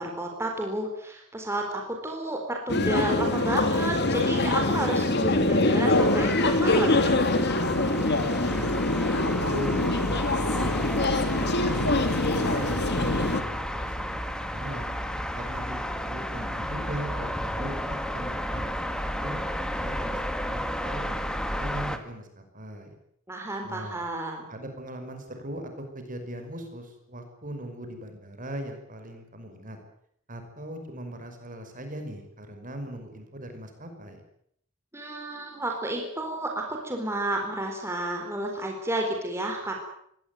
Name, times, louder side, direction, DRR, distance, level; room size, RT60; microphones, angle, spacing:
voice 1, 0.0-7.1 23.3-24.4 34.9-39.7, right 1 dB, 10° right, 1 dB, 4.2 m, -31 dB
sound 1, 2.7-13.4, left 2 dB, 55° left, 2.9 m, -24 dB
sound 2, 5.9-22.0, equal, 5° left, 2.0 m, -32 dB
voice 2, 7.9-8.8 9.2-11.9 12.4-14.9 15.3-18.7 19.2-23.0 23.6-24.0 24.5-29.8 30.3-34.2, right 1 dB, 40° right, 6 dB, 5.4 m, -39 dB
23.0 x 18.0 x 9.3 m, 0.70 s
head